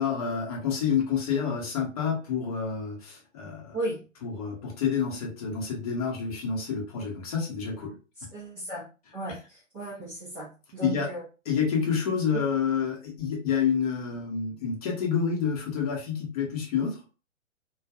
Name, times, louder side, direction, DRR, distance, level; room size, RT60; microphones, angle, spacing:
voice 1, 0.0-3.8 4.2-7.9 10.8-11.1 11.5-17.0, left 7 dB, 30° left, 0 dB, 0.7 m, -28 dB
voice 2, 8.2-8.8 9.1-11.2 12.3-12.4, right 2 dB, 10° right, -9 dB, 0.4 m, -35 dB
2.5 x 2.2 x 2.4 m, 0.33 s
figure-of-eight pair, 125°, 38 cm